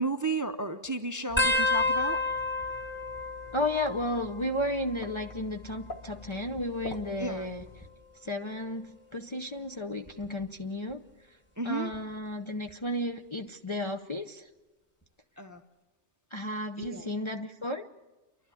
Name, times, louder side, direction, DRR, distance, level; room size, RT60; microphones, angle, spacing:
voice 1, 0.0-2.2 7.2-7.5 11.6-11.9 15.4-15.6 16.8-17.1, right 3 dB, 20° right, 8 dB, 0.6 m, -33 dB
sound 1, 1.3-7.9, left 3 dB, 45° left, 1.3 m, -47 dB
sound 2, 1.4-4.5 4.8-5.4 6.4-7.9 8.5-8.9 10.1-10.4 11.9-12.0, left 2 dB, 10° left, 1.3 m, -31 dB
voice 2, 3.5-7.6 8.2-11.0 11.6-14.5 16.3-17.9, left 1 dB, 30° left, 4 dB, 0.6 m, -33 dB
29.5 x 12.0 x 8.4 m, 1.2 s
omnidirectional pair, 1.2 m